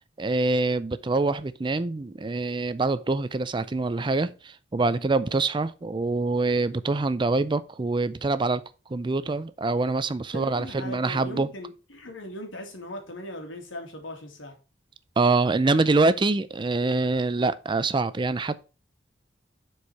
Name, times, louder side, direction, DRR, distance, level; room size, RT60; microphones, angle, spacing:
voice 1, 0.2-8.6 8.9-11.5 15.2-18.6, right 3 dB, 25° right, 0.4 m, -25 dB
voice 2, 10.3-14.6, left 1 dB, 90° left, 2.3 m, -39 dB
7.0 x 4.8 x 4.7 m
head